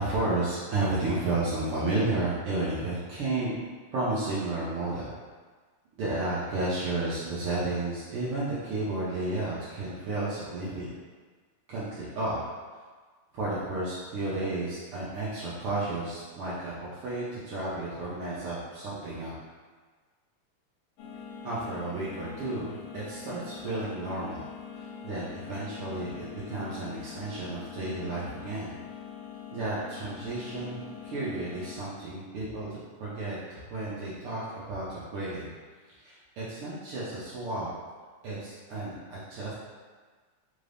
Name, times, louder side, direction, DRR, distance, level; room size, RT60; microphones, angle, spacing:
voice 1, 0.0-3.6 3.9-5.1 6.0-10.9 11.7-12.4 13.3-19.3 21.4-24.4 24.7-28.8 29.5-35.5 36.0-37.7 38.2-39.5, right 2 dB, 85° right, -9 dB, 1.2 m, -32 dB
sound 1, 21.0-31.8, left 7 dB, 85° left, 2.0 m, -43 dB
4.5 x 2.6 x 3.3 m, 1.5 s
omnidirectional pair, 3.4 m